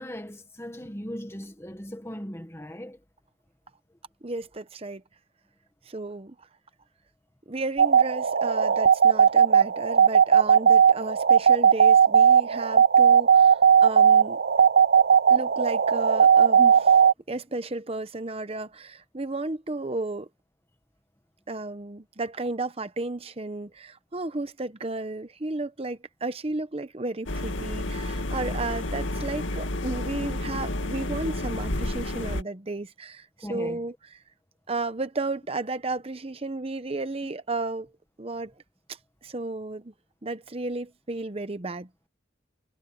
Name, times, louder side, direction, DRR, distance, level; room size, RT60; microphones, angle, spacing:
voice 1, 0.0-3.0 33.4-33.8, equal, 15° left, 1.5 m, -38 dB
voice 2, 4.2-5.0 5.9-6.5 7.5-14.4 15.3-17.0 17.3-20.3 21.5-33.9 34.7-37.9 38.2-38.5 38.9-39.9 40.2-41.9, right 2 dB, 30° right, 0.9 m, -33 dB
sound 1, 7.8-17.1, right 7 dB, 55° right, 0.5 m, -18 dB
sound 2, 27.3-32.4, left 1 dB, 80° left, 2.2 m, -30 dB
head